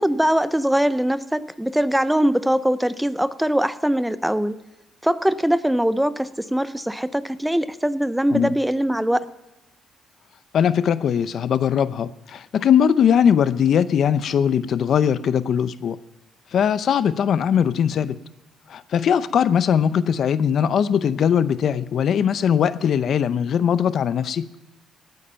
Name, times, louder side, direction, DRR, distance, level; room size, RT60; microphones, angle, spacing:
voice 1, 0.0-4.6 5.0-9.2, equal, 5° right, 14 dB, 0.7 m, -22 dB
voice 2, 10.5-16.0 16.5-18.2 18.7-24.5, left 8 dB, 65° left, 15 dB, 0.6 m, -20 dB
18.0 x 9.4 x 5.7 m, 0.98 s
cardioid pair, 90°, 0 cm